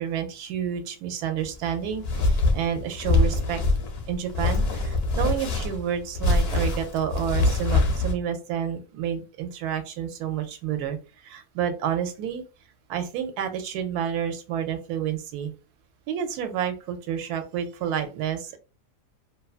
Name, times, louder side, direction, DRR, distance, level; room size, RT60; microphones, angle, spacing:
voice 1, 0.0-3.6 4.1-12.4 12.9-15.5 16.1-18.6, right 9 dB, 80° right, 7 dB, 1.1 m, -29 dB
sound 1, 1.4-8.1, left 2 dB, 60° left, 0.7 m, -24 dB
2.6 x 2.3 x 2.3 m, 0.33 s
omnidirectional pair, 1.6 m